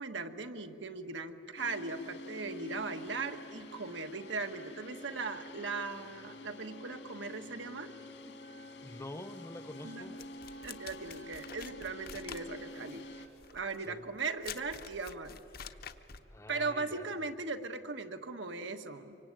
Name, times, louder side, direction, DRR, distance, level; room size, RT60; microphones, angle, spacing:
voice 1, 0.0-7.9 8.3-8.4 9.8-10.2 10.6-13.0 13.5-15.4 16.5-19.2, right 3 dB, 85° right, 7 dB, 1.4 m, -39 dB
sound 1, 1.6-13.3, left 1 dB, 70° left, 2.2 m, -48 dB
voice 2, 8.8-10.1 13.9-14.1 16.3-17.3, left 1 dB, 15° left, 11 dB, 0.8 m, -46 dB
sound 2, 10.2-16.3, left 7 dB, 50° left, 0.9 m, -48 dB
25.0 x 24.5 x 9.1 m, 2.9 s
head